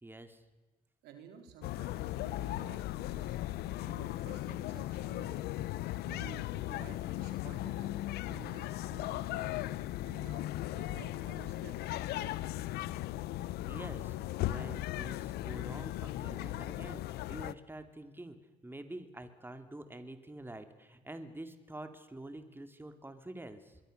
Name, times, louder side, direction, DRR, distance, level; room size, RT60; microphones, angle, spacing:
voice 1, 0.0-0.4 13.7-14.2 14.4-23.8, right 1 dB, 15° right, 8 dB, 2.7 m, -47 dB
voice 2, 1.0-3.4 3.8-5.5 6.0-9.7 10.0-12.3, right 7 dB, 85° right, 5 dB, 4.0 m, -53 dB
sound 1, 1.6-17.5, left 15 dB, 80° left, 0.8 m, -37 dB
25.5 x 22.5 x 6.6 m, 1.2 s
supercardioid pair, 65°, 16 cm